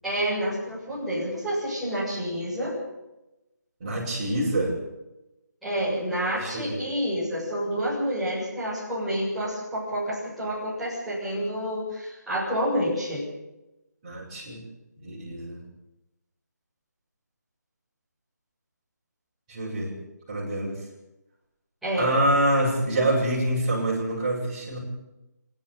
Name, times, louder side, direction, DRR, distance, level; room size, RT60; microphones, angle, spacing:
voice 1, 0.0-2.7 5.6-13.2 21.8-22.1, equal, ahead, -12 dB, 7.4 m, -28 dB
voice 2, 3.8-4.7 6.4-6.8 14.0-14.6 15.0-15.6 19.5-19.9 20.3-20.8 22.0-24.8, right 1 dB, 25° right, -6 dB, 7.7 m, -26 dB
26.5 x 11.0 x 9.9 m, 0.96 s
figure-of-eight pair, 170°, 10 cm